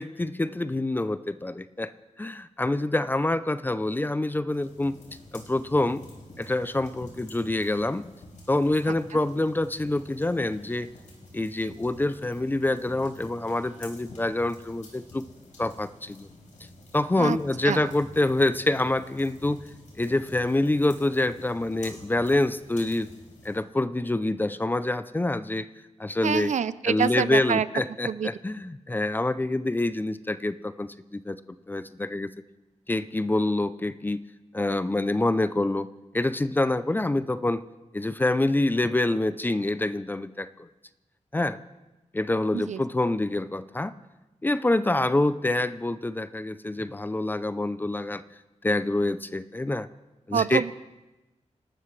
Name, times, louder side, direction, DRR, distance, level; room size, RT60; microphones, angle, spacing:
voice 1, 0.0-1.9 2.2-5.0 5.3-6.0 6.4-8.1 8.5-10.9 11.3-15.3 15.6-16.3 16.9-19.7 20.0-23.1 23.4-25.7 26.0-26.5 26.8-31.4 31.7-32.3 32.9-34.2 34.5-35.9 36.1-37.6 37.9-40.7 41.3-41.6 42.1-43.9 44.4-48.2 48.6-49.9 50.3-50.6, left 2 dB, 15° left, 13 dB, 0.4 m, -26 dB
sound 1, 4.5-23.6, left 1 dB, 85° left, 4.5 m, -49 dB
voice 2, 26.2-27.7 28.1-28.3 42.5-42.8 50.3-50.7, right 7 dB, 75° right, 15 dB, 0.5 m, -26 dB
28.5 x 12.5 x 3.2 m, 1.0 s
wide cardioid pair, 175°, 12 cm